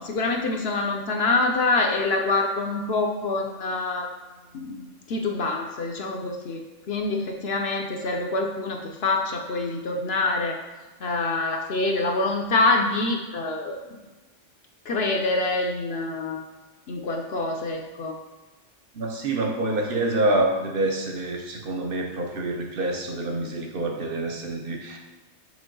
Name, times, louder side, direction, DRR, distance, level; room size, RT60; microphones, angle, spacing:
voice 1, 0.0-4.1 4.5-4.8 5.1-10.6 11.0-13.8 14.8-16.4 16.9-18.2, left 3 dB, 60° left, 1 dB, 0.9 m, -26 dB
voice 2, 18.9-25.0, right 2 dB, 50° right, 2 dB, 1.0 m, -27 dB
6.1 x 3.3 x 5.3 m, 1.2 s
omnidirectional pair, 1.3 m